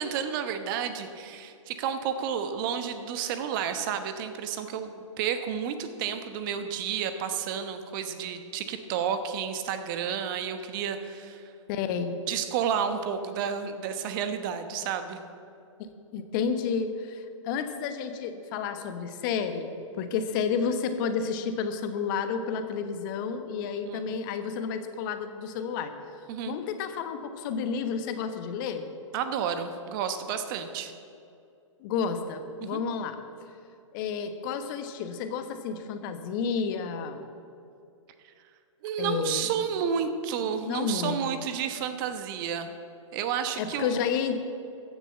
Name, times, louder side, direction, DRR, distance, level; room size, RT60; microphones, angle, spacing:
voice 1, 0.0-11.4 12.3-15.2 23.9-24.0 26.3-26.6 29.1-30.9 32.6-32.8 38.8-42.7 43.1-44.0, right 7 dB, 40° right, 9 dB, 1.1 m, -31 dB
voice 2, 11.7-12.2 15.8-25.9 26.5-28.9 31.8-33.2 33.9-37.3 39.0-39.5 40.4-41.3 43.6-44.4, left 6 dB, 40° left, 9 dB, 1.2 m, -31 dB
15.0 x 6.8 x 7.6 m, 2.5 s
hypercardioid pair, 125°, 17 cm